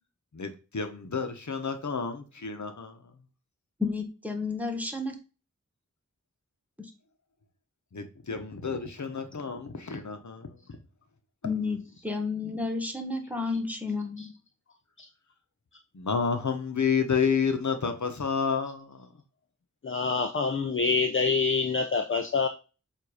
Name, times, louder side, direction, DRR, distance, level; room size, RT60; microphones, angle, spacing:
voice 1, 0.3-2.9 7.9-10.5 15.9-19.0, left 6 dB, 70° left, 6 dB, 1.0 m, -30 dB
voice 2, 3.8-5.1 11.4-11.8 12.0-14.3, left 4 dB, 5° right, 3 dB, 1.3 m, -31 dB
voice 3, 19.8-22.5, left 4 dB, 45° left, 7 dB, 0.6 m, -26 dB
7.4 x 2.6 x 4.9 m, 0.33 s
wide cardioid pair, 65°, 30 cm